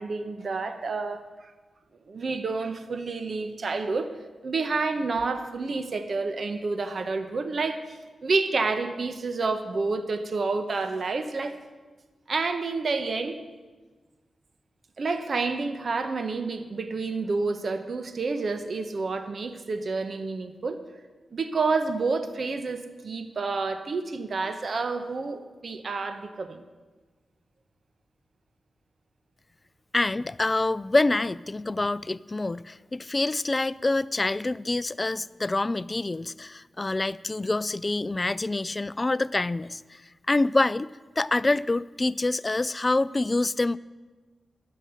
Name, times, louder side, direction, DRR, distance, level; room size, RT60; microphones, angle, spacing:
voice 1, 0.0-1.5 2.1-4.1 4.4-7.8 8.2-11.5 12.3-13.4 15.0-20.8 21.3-26.6, right 3 dB, 60° right, 9 dB, 1.0 m, -29 dB
voice 2, 29.9-40.0 40.3-43.8, left 2 dB, 30° left, 19 dB, 0.3 m, -26 dB
11.5 x 7.6 x 8.0 m, 1.3 s
cardioid pair, 55°, 0 cm